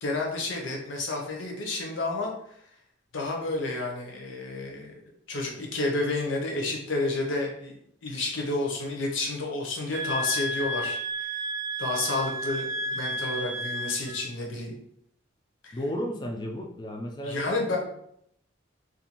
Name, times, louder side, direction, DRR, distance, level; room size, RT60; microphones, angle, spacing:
voice 1, 0.0-2.3 3.1-5.0 5.3-7.7 8.0-11.3 11.8-14.7 15.6-15.8 17.2-17.8, left 2 dB, 75° left, 0 dB, 0.7 m, -30 dB
sound 1, 9.9-14.2, right 1 dB, 70° right, 0.5 m, -32 dB
voice 2, 15.7-17.8, equal, 20° left, 1 dB, 0.3 m, -33 dB
2.5 x 2.3 x 2.9 m, 0.71 s
head